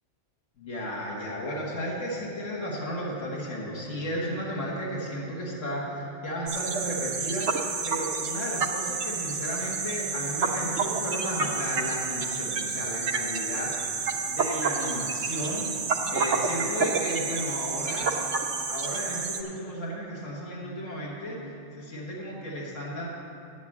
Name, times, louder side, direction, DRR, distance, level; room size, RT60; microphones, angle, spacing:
voice 1, 0.6-7.6 7.9-15.8 16.1-18.3 18.7-21.4 21.7-23.1, equal, 85° left, -4 dB, 1.8 m, -34 dB
sound 1, 6.5-19.4, right 5 dB, 70° right, 1.0 m, -29 dB
8.3 x 7.3 x 7.2 m, 2.6 s
omnidirectional pair, 1.3 m